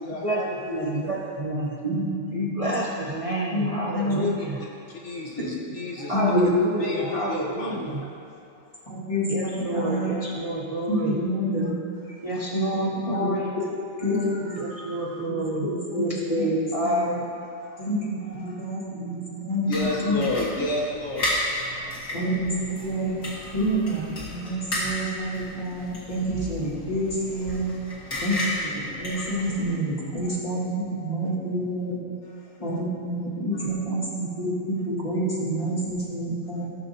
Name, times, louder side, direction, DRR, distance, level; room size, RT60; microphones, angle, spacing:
voice 1, 0.0-1.2 1.6-1.8 4.2-4.3 4.6-6.3 6.8-8.0 9.9-10.0 12.1-12.2 14.0-15.3 17.6-17.8 18.2-18.7 19.6-22.0 23.3-23.6 30.1-30.4 32.4-32.5, left 2 dB, 65° left, -3 dB, 1.3 m, -33 dB
voice 2, 0.7-1.7 2.6-4.6 6.1-6.6 6.9-8.0 9.3-11.1 12.2-13.4 14.6-15.6 16.7-17.2, right 1 dB, 35° right, -4 dB, 0.7 m, -29 dB
voice 3, 1.8-2.7 3.5-4.2 5.4-5.5 6.1-6.5 6.8-6.9 8.9-10.1 10.9-11.7 12.3-13.4 14.0-14.5 15.2-16.6 16.8-17.2 17.8-20.2 22.1-23.1 23.5-27.7 28.2-32.0 32.6-36.7, equal, 25° left, -9 dB, 2.4 m, -28 dB
sound 1, 19.7-29.8, left 1 dB, 90° left, 2.2 m, -33 dB
15.5 x 6.6 x 2.8 m, 2.6 s
omnidirectional pair, 1.3 m